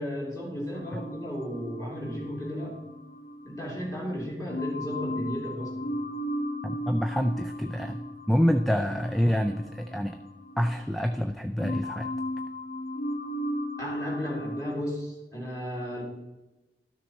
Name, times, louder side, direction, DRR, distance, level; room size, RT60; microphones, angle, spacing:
voice 1, 0.0-2.7 3.4-5.9 13.8-16.0, equal, 15° left, -3 dB, 3.0 m, -34 dB
sound 1, 0.7-4.0 4.5-11.3 11.6-14.8, equal, 50° left, 0.8 m, -36 dB
voice 2, 6.6-10.2 10.6-12.1, equal, ahead, 6 dB, 0.4 m, -27 dB
12.5 x 6.5 x 4.3 m, 1.1 s
head